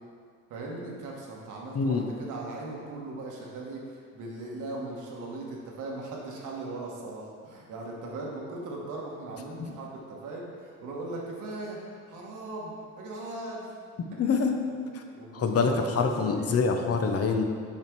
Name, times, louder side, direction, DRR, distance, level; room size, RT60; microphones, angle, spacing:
voice 1, 0.5-12.7 13.0-13.7 14.7-14.8 15.2-16.5, right 2 dB, 90° right, -2 dB, 1.4 m, -39 dB
voice 2, 14.2-14.6 14.9-15.0 15.3-17.4, left 4 dB, 50° left, 4 dB, 0.8 m, -25 dB
5.7 x 5.1 x 4.6 m, 2.1 s
cardioid pair, 90°, 30 cm